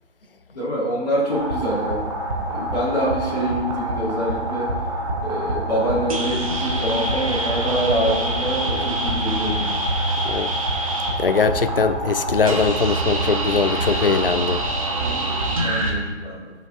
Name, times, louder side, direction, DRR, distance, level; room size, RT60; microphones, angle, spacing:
voice 1, 0.5-2.0 2.4-4.7 5.2-9.7 14.9-15.3 15.5-16.5, equal, 35° left, -8 dB, 2.1 m, -25 dB
sound 1, 1.3-15.9, right 1 dB, 30° right, 0.8 m, -25 dB
voice 2, 11.2-14.6, left 5 dB, 50° left, 11 dB, 0.4 m, -21 dB
9.2 x 6.2 x 2.6 m, 1.3 s
figure-of-eight pair, 155°, 36 cm